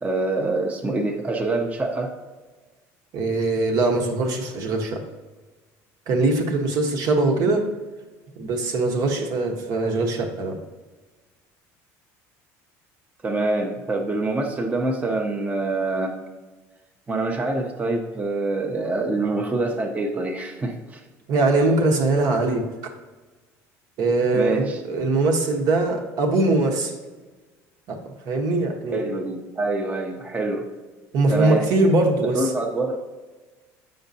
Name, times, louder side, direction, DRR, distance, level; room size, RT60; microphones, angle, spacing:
voice 1, 0.0-2.1 7.4-7.5 13.2-16.1 17.1-21.0 24.3-24.8 28.9-30.7 31.3-31.7 32.3-33.0, right 2 dB, 20° right, 2 dB, 0.7 m, -25 dB
voice 2, 3.1-5.0 6.1-7.6 8.4-10.6 21.3-22.7 24.0-26.9 27.9-28.0 28.2-29.1 31.1-32.5, right 2 dB, 60° right, 3 dB, 1.0 m, -21 dB
7.8 x 5.2 x 2.7 m, 1.3 s
supercardioid pair, 105°, 7 cm